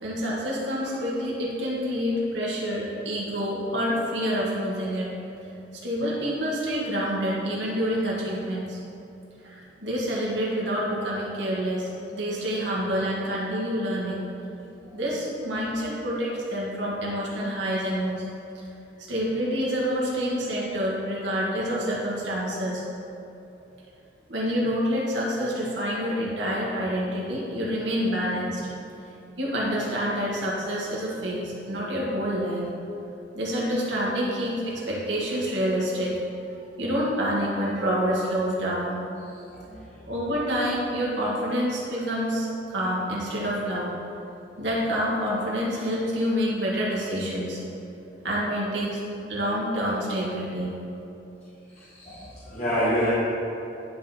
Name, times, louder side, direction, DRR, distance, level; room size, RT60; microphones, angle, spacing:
voice 1, 0.0-5.1 5.8-8.8 9.4-9.5 9.8-14.3 14.9-18.2 19.0-22.8 24.3-28.6 29.4-32.7 33.3-36.1 36.8-38.9 40.1-43.9 44.6-47.6 48.2-49.0 49.3-50.7, equal, 75° right, -5 dB, 1.6 m, -27 dB
voice 2, 52.0-53.1, equal, 35° left, -8 dB, 1.0 m, -26 dB
10.5 x 3.8 x 4.2 m, 2.9 s
head